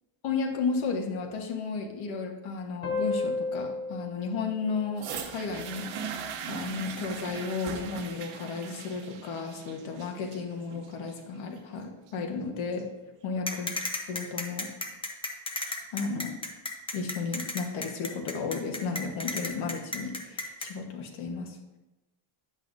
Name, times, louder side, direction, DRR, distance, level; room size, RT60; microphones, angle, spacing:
voice 1, 0.2-12.9 13.2-13.7 14.1-14.7 15.9-16.3 16.9-21.6, left 4 dB, 65° left, 2 dB, 1.4 m, -33 dB
sound 1, 2.8-6.0, left 3 dB, 40° left, 0.9 m, -34 dB
sound 2, 5.0-13.0 13.8-13.9, right 7 dB, 85° right, 1.1 m, -40 dB
sound 3, 13.5-20.7, left 2 dB, 10° left, 0.5 m, -33 dB
10.0 x 8.0 x 2.7 m, 1.0 s
cardioid pair, 175°, 50 cm